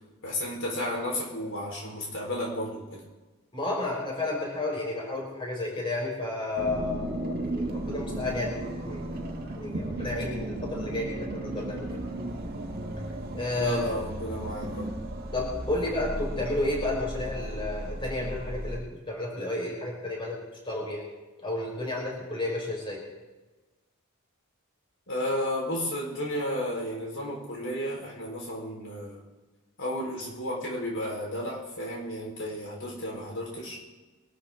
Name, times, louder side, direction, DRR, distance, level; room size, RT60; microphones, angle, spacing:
voice 1, 0.2-3.0 13.6-15.0 15.7-16.0 25.1-29.2 29.8-33.8, left 1 dB, 60° left, -2 dB, 4.4 m, -33 dB
voice 2, 3.5-11.9 13.3-13.8 15.3-20.4 20.6-21.1 21.4-23.0, left 2 dB, 25° left, -2 dB, 4.8 m, -32 dB
sound 1, 6.6-18.8, right 1 dB, 45° right, 1.8 m, -35 dB
24.0 x 12.5 x 3.8 m, 1.2 s
head